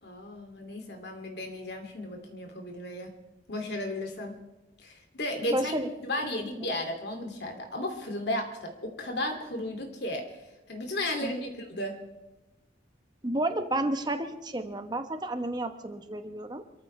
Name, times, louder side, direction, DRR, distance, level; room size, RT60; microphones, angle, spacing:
voice 1, 0.0-3.1 3.5-4.4 4.8-10.4 10.7-12.0, left 1 dB, 55° left, 3 dB, 2.6 m, -34 dB
voice 2, 5.5-5.9 6.6-6.7 11.2-11.3 13.2-16.6, right 1 dB, 20° right, 7 dB, 1.1 m, -31 dB
27.5 x 14.5 x 3.3 m, 1.0 s
head